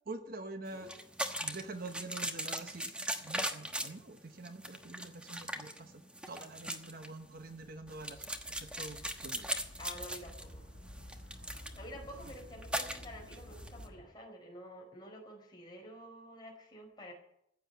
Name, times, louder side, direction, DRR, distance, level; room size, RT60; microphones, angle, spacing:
voice 1, 0.1-0.9 1.4-2.9 3.2-9.5, right 2 dB, 50° right, 8 dB, 1.0 m, -46 dB
sound 1, 0.7-13.9, right 1 dB, 5° right, 1.1 m, -40 dB
sound 2, 7.2-14.1, equal, 75° left, 2.3 m, -52 dB
voice 2, 9.8-10.6 11.7-17.1, equal, 20° left, 0 dB, 4.7 m, -49 dB
15.0 x 8.1 x 9.2 m, 0.77 s
head